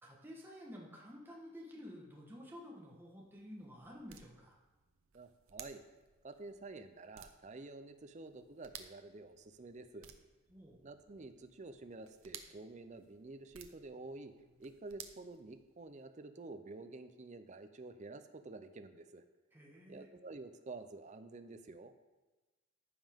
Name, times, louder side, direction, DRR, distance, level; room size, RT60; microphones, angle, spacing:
voice 1, 0.0-4.6 10.5-10.8 19.5-20.1, equal, 10° right, -4 dB, 1.3 m, -51 dB
sound 1, 2.9-16.1, right 9 dB, 80° right, 0.7 m, -58 dB
voice 2, 5.1-5.8 6.2-10.1 10.8-14.3 14.6-19.2 19.9-21.9, right 3 dB, 35° right, 9 dB, 0.5 m, -50 dB
14.0 x 5.5 x 3.6 m, 1.2 s
head